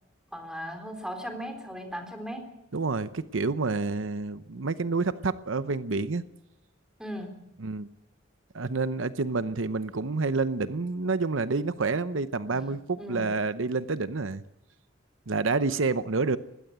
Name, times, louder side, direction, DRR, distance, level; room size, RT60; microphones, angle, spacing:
voice 1, 0.3-2.5 7.0-7.4 12.5-12.7 13.0-13.3, equal, 5° right, 4 dB, 3.8 m, -37 dB
voice 2, 2.7-6.2 7.6-7.9 8.5-14.4 15.3-16.4, right 3 dB, 90° right, 13 dB, 0.8 m, -28 dB
21.0 x 16.0 x 8.8 m, 0.85 s
head